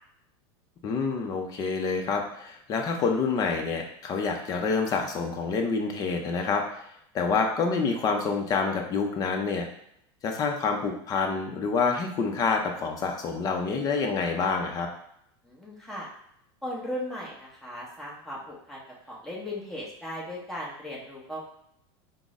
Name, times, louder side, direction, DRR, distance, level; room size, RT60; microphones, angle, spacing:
voice 1, 0.8-6.8 7.1-9.7 10.2-14.9, left 4 dB, 25° left, 3 dB, 0.5 m, -27 dB
voice 2, 15.4-16.1 16.6-18.8 19.1-21.4, left 1 dB, 5° left, -5 dB, 0.9 m, -37 dB
3.7 x 2.0 x 3.6 m, 0.74 s
supercardioid pair, 140°, 14 cm